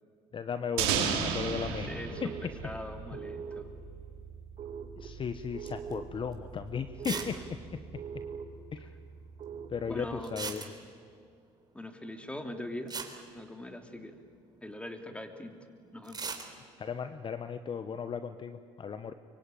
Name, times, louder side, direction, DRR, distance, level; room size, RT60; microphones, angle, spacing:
voice 1, 0.3-1.9 5.0-7.3 8.7-8.9 9.7-10.6 16.8-19.1, left 6 dB, 40° left, 10 dB, 1.1 m, -36 dB
sound 1, 0.8-3.6, right 7 dB, 85° right, 3.3 m, -32 dB
sound 2, 1.5-10.2, right 6 dB, 55° right, 2.0 m, -44 dB
voice 2, 1.6-3.6 7.1-7.3 9.9-10.5 11.7-12.9 13.3-14.1 14.6-15.6 15.9-16.2, left 1 dB, 10° left, 5 dB, 3.2 m, -42 dB
sound 3, 5.7-5.9 6.3-6.4 7.0-7.4 7.6-7.7 7.9-8.0 10.2-11.1 12.5-12.6 12.9-14.1 16.0-16.5, right 5 dB, 30° right, 3.8 m, -38 dB
23.5 x 23.5 x 9.2 m, 2.3 s
supercardioid pair, 75°, 13 cm